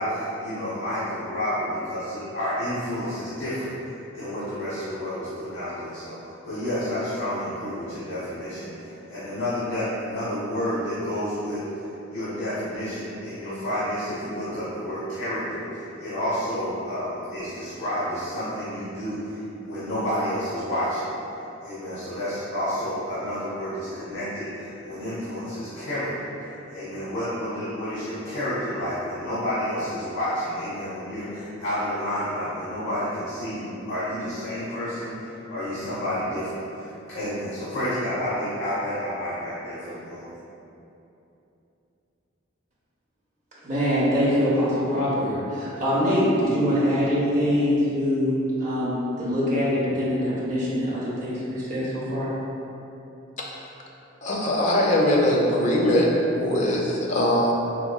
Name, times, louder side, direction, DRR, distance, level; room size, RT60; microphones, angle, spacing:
voice 1, 0.0-21.1 21.6-40.3, equal, 65° left, -12 dB, 0.8 m, -30 dB
voice 2, 43.6-52.3, equal, 35° right, -9 dB, 0.8 m, -24 dB
voice 3, 54.2-56.1 56.3-57.5, left 1 dB, 35° left, -2 dB, 0.4 m, -21 dB
4.3 x 2.5 x 2.3 m, 2.9 s
head